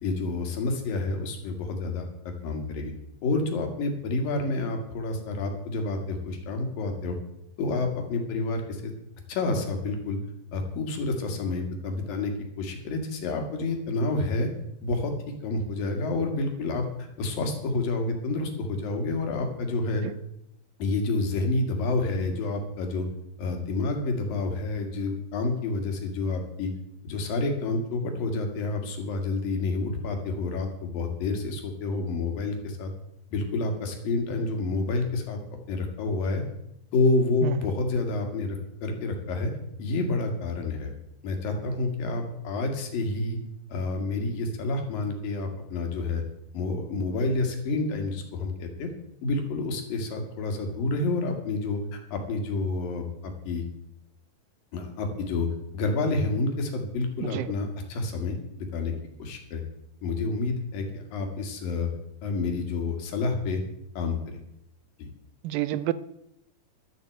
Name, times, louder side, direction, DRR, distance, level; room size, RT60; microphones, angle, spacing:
voice 1, 0.0-2.9 3.2-7.2 7.6-8.9 9.3-10.2 10.5-14.5 14.8-20.0 20.8-23.1 23.4-26.7 27.0-32.9 33.3-36.4 36.9-39.5 39.8-40.9 41.2-43.4 43.7-46.2 46.5-48.9 49.2-53.7 54.7-55.5 55.7-58.9 59.2-59.6 60.0-61.9 62.2-63.6 64.0-64.2 65.0-65.1, left 3 dB, 80° left, 4 dB, 3.8 m, -29 dB
voice 2, 65.4-65.9, right 15 dB, 90° right, 16 dB, 2.4 m, -28 dB
12.5 x 8.3 x 7.8 m, 0.82 s
omnidirectional pair, 4.0 m